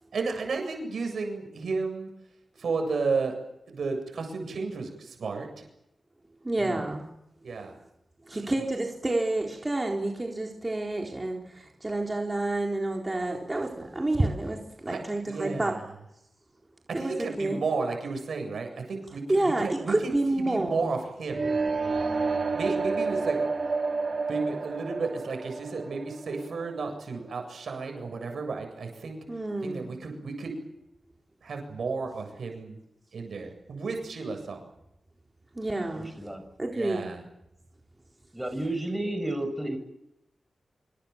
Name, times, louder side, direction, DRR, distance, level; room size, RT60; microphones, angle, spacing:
voice 1, 0.1-2.1 2.6-3.4 3.7-5.6 7.4-7.7 8.4-8.5 14.9-15.0 15.3-15.8 16.9-21.5 22.5-23.4 24.3-29.2 29.6-30.5 31.4-32.8 33.1-34.6 36.7-37.2, right 4 dB, 85° right, 4 dB, 7.8 m, -33 dB
voice 2, 6.4-7.1 8.3-15.8 16.9-17.6 19.3-20.9 29.3-29.9 35.5-36.1 36.6-37.1, right 2 dB, 25° right, 1 dB, 4.0 m, -29 dB
sound 1, 21.3-27.2, right 4 dB, 60° right, 4.7 m, -30 dB
voice 3, 35.9-36.4 38.3-39.8, right 1 dB, 10° right, 6 dB, 7.0 m, -32 dB
26.5 x 26.0 x 7.3 m, 0.86 s
wide cardioid pair, 75°, 0 cm